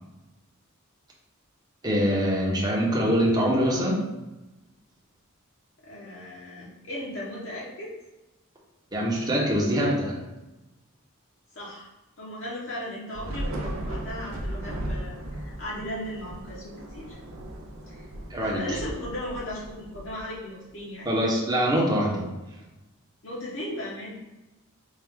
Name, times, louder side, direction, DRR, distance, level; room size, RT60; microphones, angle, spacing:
voice 1, 1.8-4.0 8.9-10.2 18.3-18.6 21.0-22.3, equal, 20° right, -4 dB, 0.8 m, -24 dB
voice 2, 5.8-7.9 11.5-11.9 12.2-17.2 17.8-18.0 18.3-21.1 23.2-24.2, left 1 dB, 60° left, -6 dB, 0.9 m, -37 dB
Thunder / Rain, 13.1-20.7, right 1 dB, 75° right, 0.5 m, -36 dB
4.5 x 2.4 x 3.5 m, 1.0 s
head